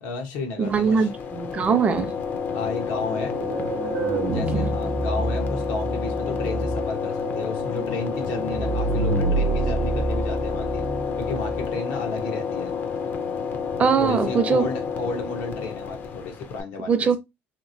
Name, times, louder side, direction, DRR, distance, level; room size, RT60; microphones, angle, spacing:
voice 1, 0.0-1.1 2.5-3.4 4.3-10.8 11.2-12.7 14.0-17.1, left 3 dB, 90° left, 1.0 m, -32 dB
sound 1, 0.6-16.6, left 6 dB, 45° left, 0.5 m, -30 dB
voice 2, 0.6-2.1 4.3-4.7 13.8-14.7 16.9-17.2, right 6 dB, 30° right, 0.5 m, -22 dB
sound 2, 3.0-11.8, right 3 dB, 80° right, 0.7 m, -28 dB
2.9 x 2.8 x 2.6 m
cardioid pair, 120°, 4 cm